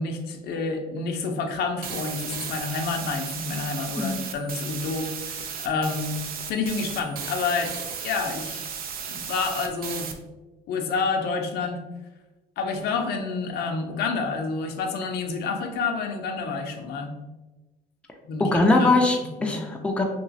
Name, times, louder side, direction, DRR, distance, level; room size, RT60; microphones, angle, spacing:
voice 1, 0.0-6.2 6.5-7.7 8.0-8.6 9.1-10.1 10.7-11.8 12.6-17.2 18.3-19.1 19.4-19.6, left 4 dB, 75° left, 4 dB, 0.5 m, -29 dB
sound 1, 1.8-10.1, right 7 dB, 60° right, 0.5 m, -35 dB
voice 2, 18.4-20.0, left 2 dB, 5° left, 1 dB, 0.4 m, -21 dB
2.9 x 2.9 x 2.7 m, 1.1 s
cardioid pair, 110°, 17 cm